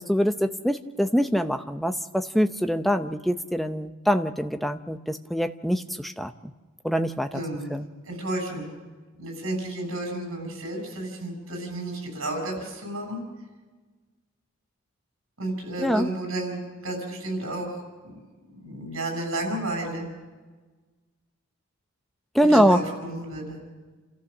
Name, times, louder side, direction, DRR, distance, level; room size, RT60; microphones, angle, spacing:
voice 1, 0.0-6.3 6.8-7.4 7.7-7.9 15.8-16.1 22.3-22.8, equal, ahead, 8 dB, 0.7 m, -24 dB
voice 2, 7.3-7.8 8.0-8.7 9.2-13.2 15.4-17.7 18.0-20.1 22.5-23.6, right 1 dB, 70° right, 3 dB, 6.8 m, -32 dB
29.0 x 14.0 x 6.6 m, 1.3 s
head